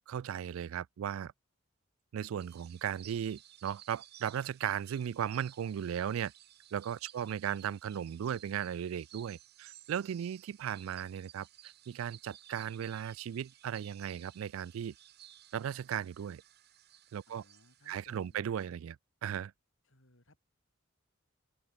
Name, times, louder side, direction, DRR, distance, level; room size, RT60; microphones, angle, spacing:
voice 1, 0.0-1.3 2.1-6.3 6.7-11.5 11.9-14.9 15.5-16.4 17.1-17.4 17.9-19.5, right 9 dB, 85° right, 0.3 m, -36 dB
sound 1, 2.4-18.3, right 12 dB, 55° right, 1.3 m, -57 dB
voice 2, 17.3-18.4 19.8-20.4, left 1 dB, 70° left, 5.4 m, -64 dB
open air
head